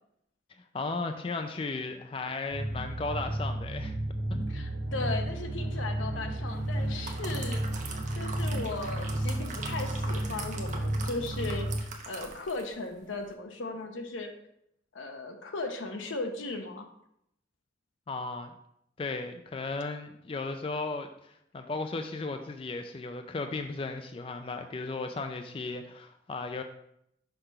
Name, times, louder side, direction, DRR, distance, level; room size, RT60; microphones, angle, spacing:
voice 1, 0.7-3.9 4.3-4.4 18.1-18.5 19.0-26.6, left 3 dB, 30° left, 6 dB, 0.3 m, -35 dB
sound 1, 2.5-11.8, right 1 dB, 80° right, 1.6 m, -32 dB
voice 2, 4.5-11.7 12.1-14.3 14.9-16.9, left 3 dB, 85° left, 5 dB, 0.8 m, -37 dB
sound 2, 6.7-12.8 13.1-13.3, right 4 dB, 40° right, 0.8 m, -42 dB
5.7 x 3.3 x 5.6 m, 0.75 s
head